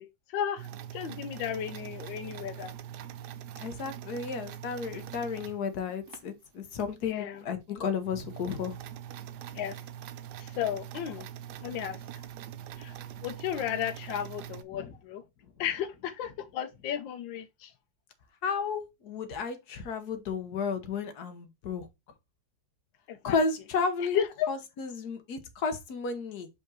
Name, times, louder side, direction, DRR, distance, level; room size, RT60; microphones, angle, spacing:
voice 1, 0.0-2.7 7.0-7.4 9.5-9.8 10.4-11.3 11.6-12.0 12.8-15.2 15.6-17.7 23.1-23.4 24.1-24.5, left 10 dB, 85° left, 1.5 m, -34 dB
sound 1, 0.6-6.2 6.8-6.9 7.3-7.4 7.7-14.6, right 10 dB, 70° right, 1.1 m, -43 dB
voice 2, 3.6-8.8 14.7-14.9 18.4-21.9 23.2-24.2 24.5-26.5, left 5 dB, 60° left, 1.5 m, -33 dB
5.2 x 3.8 x 4.6 m
omnidirectional pair, 2.0 m